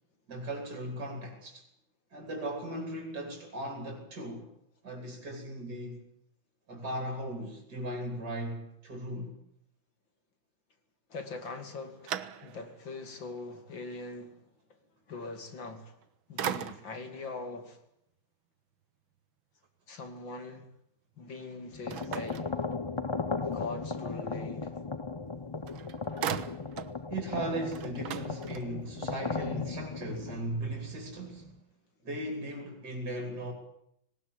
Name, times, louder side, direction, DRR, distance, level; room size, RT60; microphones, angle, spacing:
voice 1, 0.3-1.7 2.1-4.5 4.8-6.0 6.7-9.3 27.1-31.5 32.0-33.5, right 1 dB, 55° right, 3.9 m, -37 dB
voice 2, 11.1-14.4 15.1-16.0 16.3-17.8 19.9-20.7 21.2-22.5 23.4-24.7, left 3 dB, 65° left, 3.3 m, -42 dB
sound 1, 11.4-12.9 13.4-13.5 15.7-16.0 16.4-17.1 21.9-23.2 25.3-25.4 25.7-27.0 27.3-27.4 27.7-29.0, right 9 dB, 85° right, 1.9 m, -38 dB
sound 2, 21.7-31.5, left 4 dB, 45° left, 0.3 m, -36 dB
19.5 x 19.0 x 9.6 m
omnidirectional pair, 2.2 m